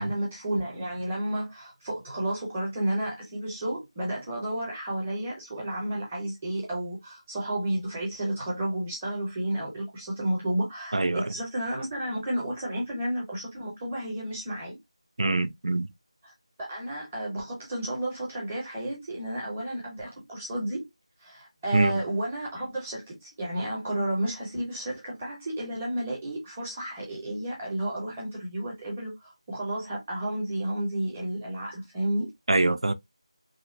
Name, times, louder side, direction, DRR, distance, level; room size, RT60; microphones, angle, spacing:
voice 1, 0.0-14.8 16.2-16.3 16.6-20.9 21.2-32.3, right 1 dB, 10° right, 0.6 m, -32 dB
voice 2, 10.9-11.3 15.2-15.9 21.7-22.0 32.5-32.9, right 2 dB, 65° right, 0.3 m, -24 dB
2.7 x 2.2 x 2.5 m
figure-of-eight pair, 170°, 3 cm